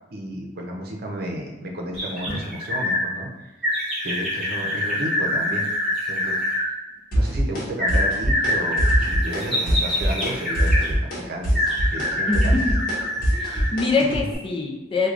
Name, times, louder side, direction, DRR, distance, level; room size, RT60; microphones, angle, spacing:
voice 1, 0.1-3.7 4.0-5.7 6.1-6.8 7.1-11.0 11.3-12.7 13.1-13.3, right 1 dB, 60° right, 0 dB, 0.6 m, -32 dB
sound 1, 1.9-3.0 3.6-6.6 7.8-10.9 11.5-13.8 14.3-14.4, left 1 dB, ahead, 1.2 m, -25 dB
sound 2, 7.1-7.6 7.9-8.5 8.8-9.4 9.7-10.3 10.6-14.2, equal, 55° left, 1.1 m, -22 dB
voice 2, 13.3-15.1, left 4 dB, 30° left, 1 dB, 0.4 m, -24 dB
4.6 x 2.3 x 2.5 m, 1.1 s
head